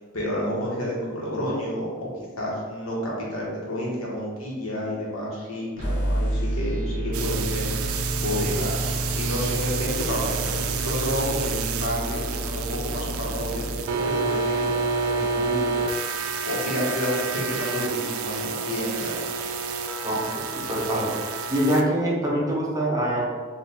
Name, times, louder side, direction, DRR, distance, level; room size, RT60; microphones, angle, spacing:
voice 1, 0.1-2.1 2.4-7.9 8.2-14.8 15.0-15.8 16.2-19.2 20.1-20.2, equal, 75° left, -4 dB, 1.3 m, -30 dB
sound 1, 5.8-13.8, right 1 dB, 30° left, 1.5 m, -30 dB
sound 2, 7.1-21.8, right 4 dB, 80° right, 0.4 m, -29 dB
voice 2, 20.0-21.2 21.5-23.2, right 1 dB, 15° right, -4 dB, 0.7 m, -24 dB
4.8 x 2.6 x 3.4 m, 1.5 s
head